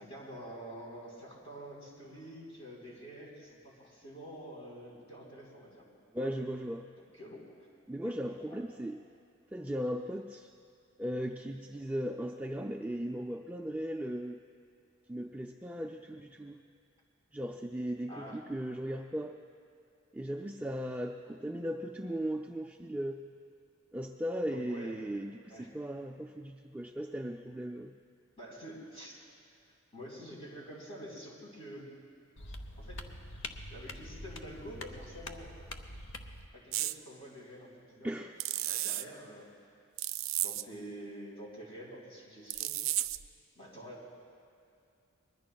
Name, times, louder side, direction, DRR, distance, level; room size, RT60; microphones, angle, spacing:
voice 1, 0.0-5.8 6.2-6.3 7.1-7.5 8.5-8.6 18.1-18.4 24.5-24.9 25.5-25.7 28.4-29.2 29.9-31.9 32.8-33.0 33.7-35.5 36.5-38.2 38.6-39.5 40.4-42.7 43.5-44.0, equal, 30° left, -4 dB, 3.9 m, -47 dB
voice 2, 6.1-6.9 7.9-9.0 9.5-10.5 11.0-14.4 15.1-16.6 17.3-19.4 20.1-23.3 23.9-27.9 38.0-38.3, equal, 10° right, 2 dB, 0.3 m, -37 dB
sound 1, 32.4-36.5, left 2 dB, 65° left, 0.8 m, -45 dB
sound 2, 36.7-37.0 38.4-39.0 40.0-40.6 42.5-43.3, right 15 dB, 80° right, 0.4 m, -33 dB
24.5 x 21.0 x 2.3 m, 2.5 s
head